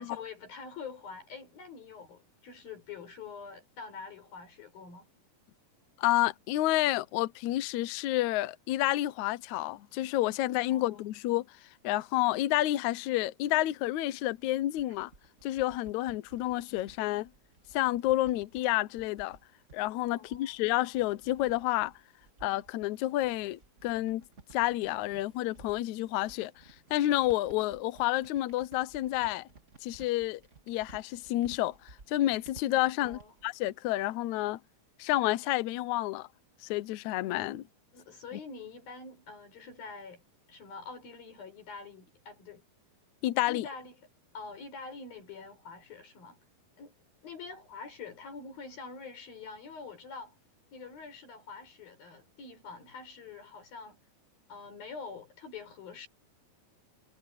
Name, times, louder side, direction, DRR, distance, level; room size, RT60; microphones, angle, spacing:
voice 1, 0.0-5.1 10.7-11.0 20.1-20.5 33.0-33.3 37.9-40.2 40.5-42.6 43.5-44.0 44.3-46.4 46.8-46.9 47.2-50.4 50.7-54.0 54.5-56.1, left 5 dB, 65° left, 7.1 m, -45 dB
voice 2, 6.0-11.4 11.8-15.1 15.4-17.3 17.7-19.4 19.7-21.9 22.4-24.2 24.5-26.5 26.9-29.5 29.8-30.4 30.7-31.8 32.1-34.6 35.0-36.3 36.6-37.6 43.2-43.7, left 15 dB, 80° left, 1.6 m, -29 dB
sound 1, 14.3-33.4, right 3 dB, 25° right, 1.5 m, -56 dB
omnidirectional pair, 4.5 m